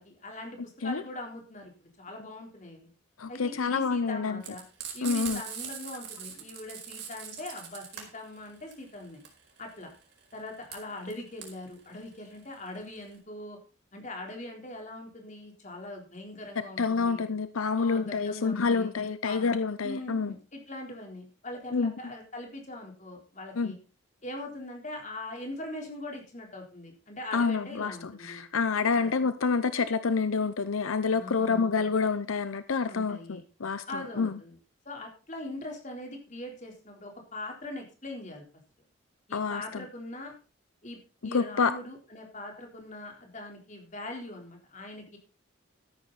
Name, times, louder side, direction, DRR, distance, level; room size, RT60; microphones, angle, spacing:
voice 1, 0.0-2.9 3.3-4.6 4.9-9.2 9.6-9.9 10.3-13.6 13.9-17.2 17.8-18.9 19.2-19.5 19.8-23.8 24.2-28.4 28.9-29.1 31.1-31.7 32.9-33.4 33.9-34.6 34.9-38.4 39.3-40.3 40.8-41.0 41.2-45.2, left 1 dB, 35° left, 2 dB, 3.8 m, -41 dB
voice 2, 3.2-4.4 5.0-5.4 16.8-20.3 21.7-21.9 23.6-23.8 27.3-34.3 39.3-39.8 41.3-41.7, left 5 dB, 85° left, 12 dB, 0.7 m, -28 dB
Frying (food), 4.4-13.2, right 7 dB, 50° right, 4.6 m, -41 dB
13.5 x 10.5 x 4.1 m, 0.34 s
head